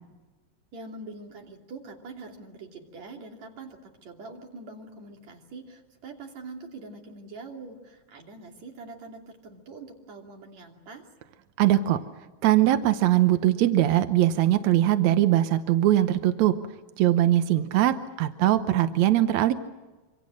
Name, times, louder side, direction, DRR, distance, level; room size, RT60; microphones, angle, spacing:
voice 1, 0.7-11.1, right 3 dB, 50° right, 1 dB, 3.9 m, -44 dB
voice 2, 11.6-12.0 12.4-16.6 17.0-19.5, right 13 dB, 75° right, 9 dB, 1.7 m, -21 dB
27.0 x 25.0 x 6.4 m, 1.2 s
omnidirectional pair, 4.3 m